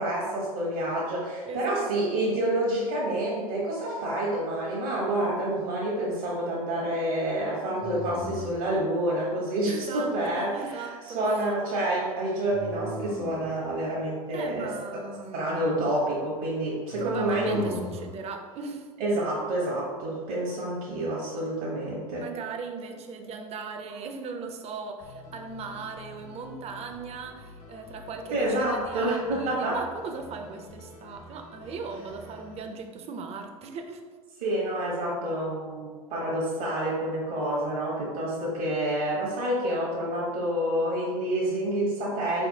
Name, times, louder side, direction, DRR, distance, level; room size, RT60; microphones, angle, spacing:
voice 1, 0.0-15.0 15.3-17.8 19.0-22.3 28.3-29.8 34.4-42.5, right 1 dB, 75° right, -5 dB, 1.2 m, -28 dB
voice 2, 1.5-2.1 9.6-11.2 14.3-15.6 17.0-18.9 22.2-34.0, right 5 dB, 35° right, 5 dB, 0.5 m, -38 dB
sound 1, 5.1-5.7 7.8-8.8 12.5-13.6 16.9-18.2, left 3 dB, 20° left, 0.5 m, -39 dB
sound 2, 25.0-32.6, left 2 dB, 80° left, 1.2 m, -48 dB
4.2 x 3.4 x 2.8 m, 1.5 s
hypercardioid pair, 85°, 19 cm